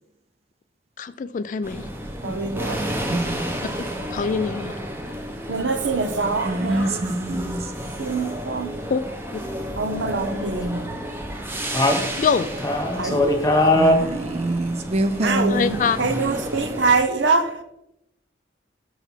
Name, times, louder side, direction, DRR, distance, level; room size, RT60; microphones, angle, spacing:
voice 1, 1.0-1.9 4.1-4.7 8.9-9.0 9.3-9.4 12.2-12.5 15.5-16.0, left 5 dB, 45° left, 0.3 m, -24 dB
sound 1, 1.6-17.0, equal, 10° right, 0.9 m, -32 dB
voice 2, 2.2-2.8 5.5-7.1 8.0-8.8 9.8-11.1 12.9-13.7 15.2-15.6 16.0-17.6, right 4 dB, 75° right, 0.9 m, -24 dB
voice 3, 3.1-3.6 6.5-7.9 13.8-15.8, right 1 dB, 35° right, 0.4 m, -25 dB
voice 4, 11.7-12.0 12.6-14.0, left 1 dB, 20° left, 1.3 m, -19 dB
6.5 x 6.0 x 4.5 m
head